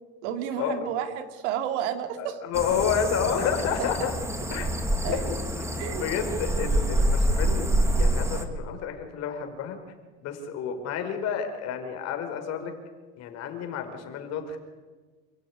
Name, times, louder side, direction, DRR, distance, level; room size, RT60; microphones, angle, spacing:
voice 1, 0.2-2.4 5.0-5.3 5.8-6.1, right 10 dB, 85° right, 8 dB, 2.8 m, -31 dB
voice 2, 2.2-4.1 4.5-4.7 5.1-9.8 10.2-12.7 13.2-14.6, left 7 dB, 50° left, 6 dB, 4.6 m, -30 dB
sound 1, 2.5-8.4, right 1 dB, 10° right, 2.1 m, -26 dB
28.0 x 16.0 x 9.5 m, 1.4 s
cardioid pair, 145°, 33 cm